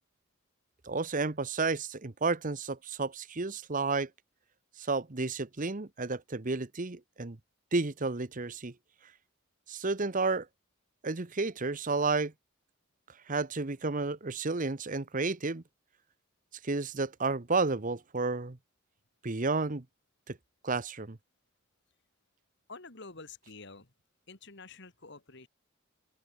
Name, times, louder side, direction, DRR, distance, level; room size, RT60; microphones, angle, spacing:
voice 1, 0.8-4.1 4.8-7.4 7.7-8.7 9.7-10.5 11.0-12.3 13.3-15.6 16.6-18.6 19.2-19.8 20.3-20.4 20.6-21.2, right 3 dB, 40° right, 1.0 m, -31 dB
voice 2, 22.7-23.9 24.3-25.5, left 3 dB, 55° left, 2.6 m, -48 dB
open air
head